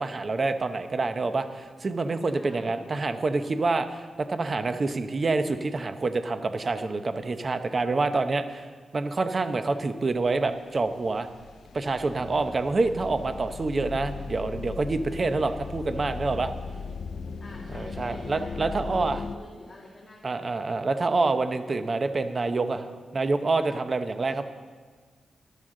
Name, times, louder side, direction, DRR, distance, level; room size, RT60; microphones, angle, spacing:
voice 1, 0.0-8.7 8.9-11.3 11.7-16.5 17.7-19.2 20.2-24.4, right 3 dB, 35° right, 9 dB, 0.7 m, -27 dB
voice 2, 2.3-2.8 12.1-12.6 17.4-20.6, left 2 dB, 25° left, -3 dB, 1.8 m, -48 dB
sound 1, 10.3-10.5 10.8-19.4, left 5 dB, 75° left, 0.5 m, -38 dB
14.0 x 11.5 x 3.8 m, 1.5 s
wide cardioid pair, 110°, 0 cm